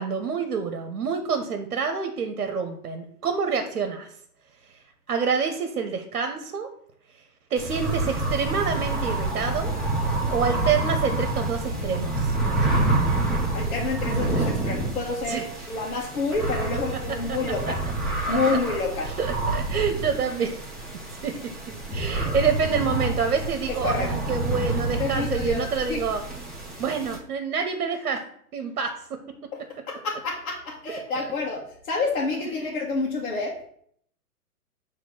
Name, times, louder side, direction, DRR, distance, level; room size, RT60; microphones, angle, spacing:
voice 1, 0.0-4.1 5.1-6.7 7.5-9.7 10.3-12.3 12.6-12.7 14.3-14.5 15.3-15.4 17.3-17.4 18.3-18.4 19.2-20.6 21.2-21.5 21.9-26.2 26.8-28.2 28.5-28.9 31.1-31.2 32.4-32.7, right 6 dB, 65° right, 6 dB, 1.1 m, -27 dB
sound 1, 7.6-27.2, right 2 dB, ahead, 1.1 m, -28 dB
voice 2, 13.5-15.4 15.7-17.8 18.3-19.1 23.8-24.1 25.0-25.6 25.9-26.0 29.5-29.6 29.9-33.6, left 3 dB, 60° left, -4 dB, 1.7 m, -28 dB
6.1 x 3.5 x 6.0 m, 0.62 s
figure-of-eight pair, 120°, 45 cm